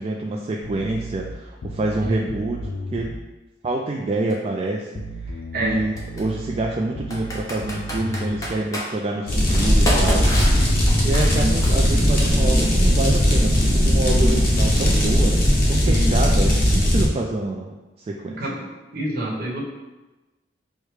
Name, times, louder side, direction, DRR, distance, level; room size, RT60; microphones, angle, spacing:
voice 1, 0.0-3.1 3.6-10.3 11.0-18.4, right 2 dB, 35° right, -1 dB, 0.3 m, -27 dB
sound 1, 0.6-3.2 4.9-8.6 9.6-11.3, equal, 85° left, 0.4 m, -33 dB
voice 2, 2.0-2.3 5.5-5.8 11.3-11.7 15.8-16.1 18.2-18.7 18.9-19.6, right 1 dB, 55° right, -3 dB, 1.0 m, -27 dB
Computer keyboard, 4.3-4.4 6.0-6.2 7.1-8.9 9.5-12.2, equal, 20° left, 0.8 m, -28 dB
sound 2, 9.3-17.1, equal, 50° left, 1.0 m, -18 dB
4.7 x 2.1 x 4.8 m, 1.1 s
head